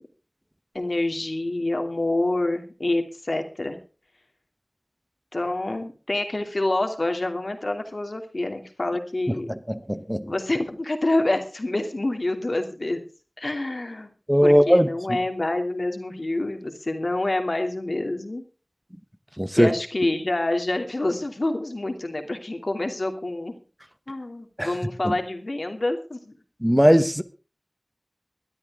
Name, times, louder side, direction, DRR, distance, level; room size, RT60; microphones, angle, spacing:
voice 1, 0.7-3.8 5.3-9.5 10.2-13.0 13.4-14.1 14.4-18.4 19.6-23.6 24.1-26.3, left 2 dB, 70° left, 2.7 m, -27 dB
voice 2, 9.7-10.3 14.3-14.9 19.4-19.7 24.6-24.7 25.0-25.1 26.6-27.2, equal, 5° right, 1.1 m, -18 dB
20.5 x 12.0 x 3.6 m
wide cardioid pair, 45°, 0 cm